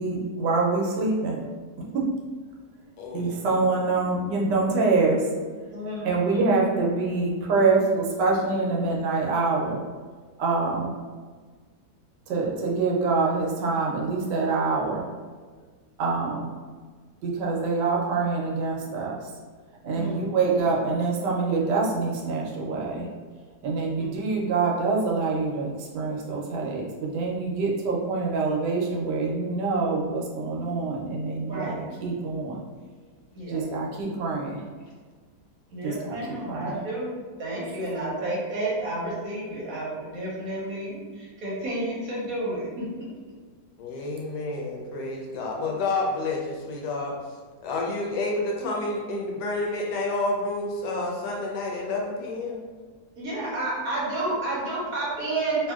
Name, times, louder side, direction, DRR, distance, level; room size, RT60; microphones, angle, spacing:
voice 1, 0.0-1.4 1.9-2.1 3.1-5.2 6.0-9.8 10.4-10.9 12.3-15.1 16.0-16.5 17.2-19.3 19.8-23.1 23.6-32.6 33.5-34.6 35.8-36.7, right 3 dB, 80° right, -2 dB, 1.2 m, -25 dB
voice 2, 3.0-3.6 20.0-20.2 43.8-47.2 47.6-52.6, left 2 dB, 75° left, -1 dB, 1.2 m, -29 dB
voice 3, 5.7-6.4 19.9-20.4 23.9-24.1 31.4-31.8 33.3-33.6 35.7-42.9 53.2-55.7, right 2 dB, 60° right, -6 dB, 1.2 m, -31 dB
2.9 x 2.7 x 2.3 m, 1.5 s
omnidirectional pair, 1.8 m